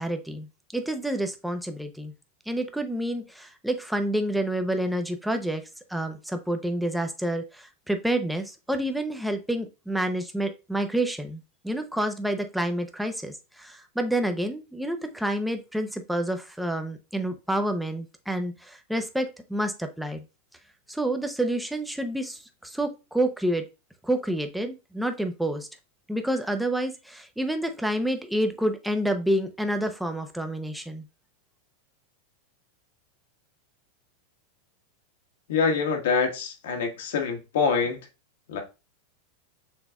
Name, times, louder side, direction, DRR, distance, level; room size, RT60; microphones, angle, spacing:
voice 1, 0.0-2.1 2.5-5.6 5.9-20.2 20.9-23.6 24.0-25.7 26.1-31.1, right 1 dB, ahead, 0.6 m, -28 dB
voice 2, 35.5-38.0 38.5-38.6, left 5 dB, 75° left, 1.3 m, -25 dB
6.1 x 3.3 x 2.3 m
supercardioid pair, 120°, 0 cm